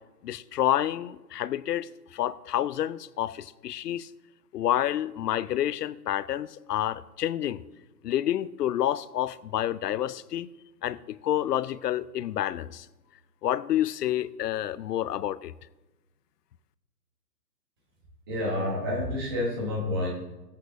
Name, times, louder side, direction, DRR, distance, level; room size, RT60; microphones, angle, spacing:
voice 1, 0.2-4.1 4.5-7.6 8.0-10.5 10.8-12.9 13.4-15.5, left 12 dB, 80° left, 0.6 m, -29 dB
voice 2, 18.3-20.1, left 1 dB, 15° right, 1.1 m, -29 dB
16.5 x 8.4 x 2.6 m
hypercardioid pair, 175°, 47 cm